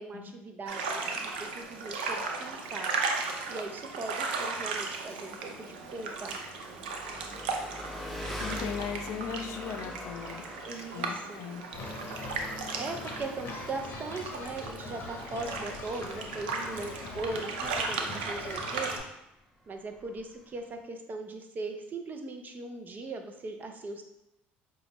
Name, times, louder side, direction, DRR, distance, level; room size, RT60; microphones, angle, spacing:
voice 1, 0.0-2.9 3.5-6.4 10.6-11.4 12.7-18.9 19.7-24.0, right 3 dB, 35° right, 5 dB, 0.6 m, -39 dB
sound 1, 0.7-19.0, right 4 dB, 85° right, 0.5 m, -36 dB
Engine, 1.2-20.8, left 1 dB, 5° left, 1.0 m, -45 dB
voice 2, 8.4-10.4 10.7-11.7, left 7 dB, 65° left, 7 dB, 0.4 m, -39 dB
sound 2, 11.7-19.0, left 2 dB, 45° left, 0.8 m, -42 dB
5.0 x 2.3 x 2.9 m, 0.88 s
hypercardioid pair, 70°, 5 cm